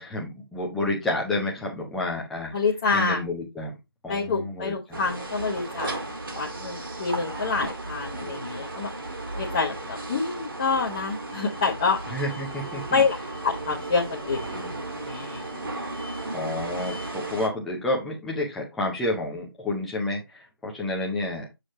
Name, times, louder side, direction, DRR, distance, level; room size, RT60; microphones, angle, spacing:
voice 1, 0.0-2.6 2.9-3.7 4.0-5.0 12.1-13.0 16.3-21.5, left 2 dB, ahead, -3 dB, 0.5 m, -30 dB
voice 2, 2.5-3.2 4.1-6.0 6.3-8.9 9.3-12.0 12.9-13.2 13.4-14.6 14.9-15.4, left 4 dB, 20° left, -3 dB, 0.9 m, -27 dB
sound 1, 4.9-17.5, right 2 dB, 60° right, 2.1 m, -35 dB
6.6 x 6.1 x 3.0 m, 0.21 s
figure-of-eight pair, 160°, 13 cm